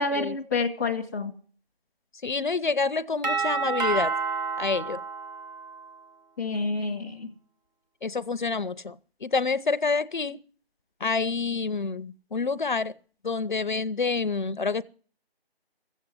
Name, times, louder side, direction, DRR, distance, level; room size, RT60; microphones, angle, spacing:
voice 1, 0.0-1.3 6.4-7.3, left 3 dB, ahead, 0.6 m, -28 dB
voice 2, 2.2-4.2 4.6-5.0 8.0-10.4 11.0-12.9 13.2-14.8, left 4 dB, 50° left, 0.6 m, -28 dB
Doorbell, 3.2-6.1, right 5 dB, 45° right, 2.1 m, -29 dB
15.0 x 8.1 x 9.6 m
figure-of-eight pair, 160°, 31 cm